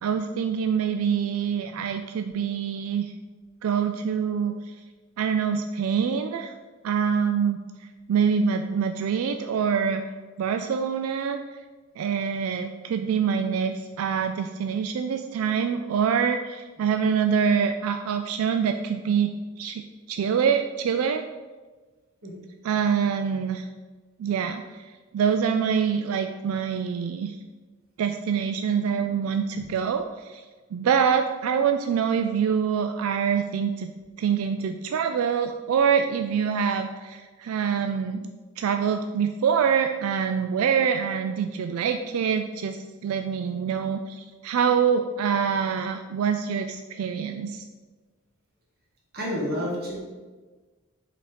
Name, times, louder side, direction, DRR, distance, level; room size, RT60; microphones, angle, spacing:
voice 1, 0.0-3.1 3.6-4.8 5.2-6.5 6.8-7.6 8.1-10.0 10.4-11.4 12.0-19.8 20.1-21.2 22.6-23.7 24.2-27.4 28.0-30.4 30.7-33.9 34.2-38.3 38.6-47.6, right 7 dB, 90° right, 7 dB, 0.3 m, -25 dB
voice 2, 49.1-50.0, equal, 50° right, -3 dB, 1.6 m, -29 dB
5.3 x 4.1 x 5.0 m, 1.3 s
head